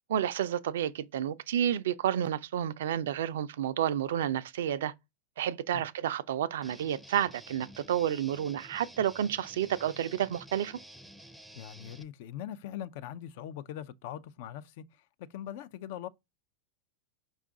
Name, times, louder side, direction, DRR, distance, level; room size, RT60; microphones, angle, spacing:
voice 1, 0.1-4.9 5.4-10.8, right 10 dB, 75° right, 0.3 m, -30 dB
Guitar, 6.6-12.0, right 1 dB, 5° right, 0.5 m, -51 dB
voice 2, 11.5-16.1, left 11 dB, 65° left, 0.4 m, -41 dB
5.1 x 2.3 x 3.7 m
hypercardioid pair, 110°, 0 cm